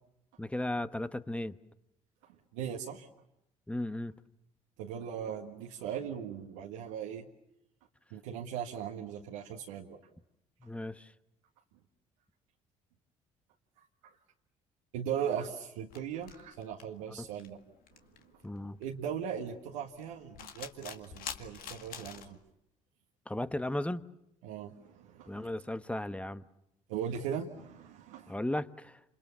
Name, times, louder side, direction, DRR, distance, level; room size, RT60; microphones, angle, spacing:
voice 1, 0.4-1.6 3.7-4.1 10.6-11.1 18.4-18.8 23.3-24.0 25.3-26.4 28.3-29.0, left 1 dB, 5° left, 1.1 m, -35 dB
voice 2, 2.2-3.1 4.8-7.3 8.1-10.0 14.0-14.1 14.9-17.6 18.8-22.4 24.4-25.5 26.9-28.3, right 8 dB, 75° right, 1.6 m, -39 dB
sound 1, 15.9-22.4, left 8 dB, 60° left, 2.0 m, -47 dB
28.0 x 27.5 x 7.0 m
hypercardioid pair, 55°, 17 cm